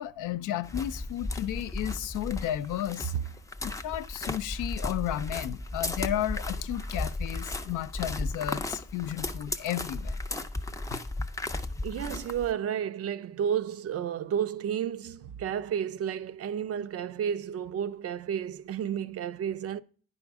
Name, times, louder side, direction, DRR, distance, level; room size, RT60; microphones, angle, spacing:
voice 1, 0.0-3.1 3.8-10.2 10.9-11.0, left 12 dB, 80° left, 0.5 m, -33 dB
sound 1, 0.6-12.5, left 2 dB, 10° left, 0.4 m, -35 dB
voice 2, 11.8-19.8, right 9 dB, 50° right, 0.4 m, -31 dB
9.7 x 5.0 x 3.5 m
cardioid pair, 90°, 30 cm